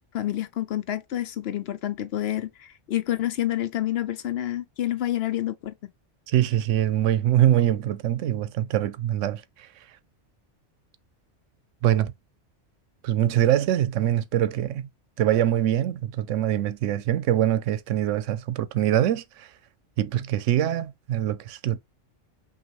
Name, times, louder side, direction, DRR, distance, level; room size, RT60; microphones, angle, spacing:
voice 1, 0.0-5.7, left 13 dB, 65° left, 0.8 m, -28 dB
voice 2, 6.3-9.4 11.8-12.1 13.0-14.9 15.2-19.5 20.0-21.8, right 11 dB, 85° right, 0.9 m, -23 dB
5.6 x 2.5 x 3.0 m
omnidirectional pair, 1.2 m